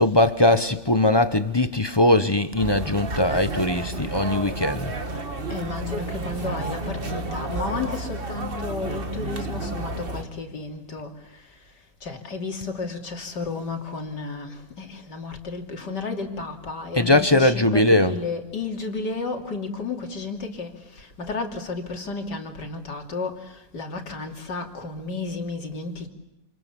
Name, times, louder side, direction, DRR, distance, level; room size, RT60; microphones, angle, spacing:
voice 1, 0.0-4.9 16.9-18.2, left 1 dB, 20° left, 0.8 m, -20 dB
sound 1, 2.6-10.2, right 2 dB, 30° right, 1.8 m, -31 dB
voice 2, 5.5-11.6 12.0-26.1, left 3 dB, 70° left, 3.5 m, -32 dB
28.5 x 28.0 x 7.1 m
omnidirectional pair, 1.9 m